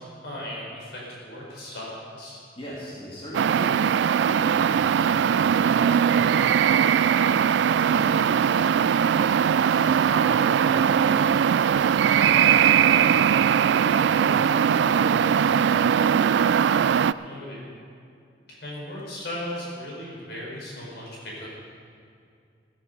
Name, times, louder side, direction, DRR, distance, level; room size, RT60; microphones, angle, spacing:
voice 1, 0.0-2.4 7.8-8.1 12.9-13.4 17.1-17.7 18.5-21.5, left 1 dB, 75° left, -4 dB, 4.9 m, -37 dB
voice 2, 2.5-3.8 4.2-9.2 9.5-11.4 12.0-13.2 13.6-16.2, equal, 30° left, -7 dB, 2.9 m, -39 dB
sound 1, 3.3-17.1, right 8 dB, 90° right, 0.3 m, -20 dB
14.5 x 14.0 x 5.4 m, 2.3 s
head